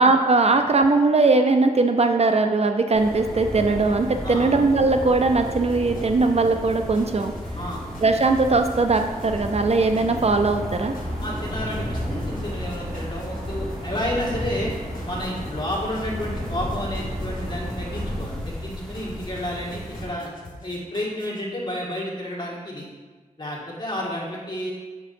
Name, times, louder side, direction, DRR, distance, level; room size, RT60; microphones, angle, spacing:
voice 1, 0.0-7.3 8.0-10.9, right 3 dB, 50° right, 6 dB, 0.4 m, -20 dB
sound 1, 2.9-20.1, equal, 5° left, 1.3 m, -33 dB
sound 2, 5.4-21.4, left 2 dB, 75° left, 1.0 m, -46 dB
sound 3, 9.2-18.2, equal, 85° right, 1.2 m, -37 dB
voice 2, 11.2-14.7 15.0-20.3 20.6-22.8 23.4-24.7, left 1 dB, 35° left, -4 dB, 1.8 m, -31 dB
6.6 x 5.8 x 2.6 m, 1.3 s
wide cardioid pair, 60°, 14 cm